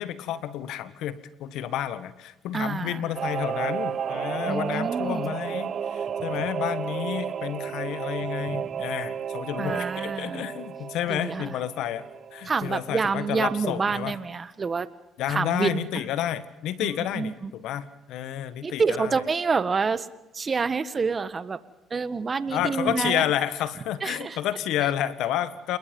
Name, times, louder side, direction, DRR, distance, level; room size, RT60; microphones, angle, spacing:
voice 1, 0.0-14.2 15.2-19.2 22.5-25.8, left 11 dB, 75° left, 13 dB, 1.7 m, -30 dB
voice 2, 2.5-3.1 4.5-5.4 9.6-10.5 11.1-11.5 12.5-14.9 15.3-15.9 16.8-16.9 17.1-17.5 18.6-20.1 20.3-21.6 21.9-23.2 24.0-24.4, right 5 dB, 35° right, 13 dB, 1.6 m, -27 dB
Singing / Musical instrument, 3.2-13.2 13.5-13.6, right 8 dB, 50° right, 1.0 m, -32 dB
28.5 x 22.0 x 5.5 m, 0.94 s
supercardioid pair, 80°, 0 cm